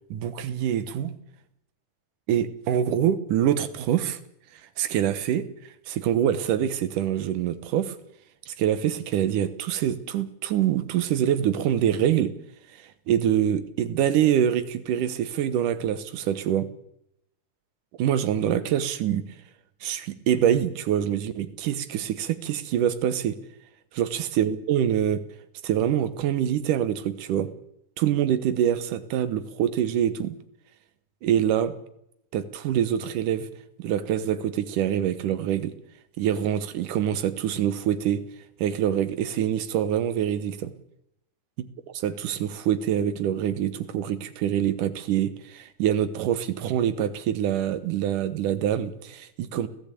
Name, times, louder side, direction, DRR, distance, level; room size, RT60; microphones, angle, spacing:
voice 1, 0.1-1.2 2.3-4.2 4.8-5.5 5.9-8.0 8.5-12.3 12.7-16.7 18.0-19.3 19.8-23.4 23.9-25.2 25.6-27.5 28.0-30.4 31.2-31.7 32.3-33.5 33.8-35.7 36.2-38.2 38.6-40.7 41.9-49.7, right 10 dB, 80° right, 13 dB, 2.7 m, -25 dB
29.5 x 15.5 x 8.4 m, 0.82 s
omnidirectional pair, 3.7 m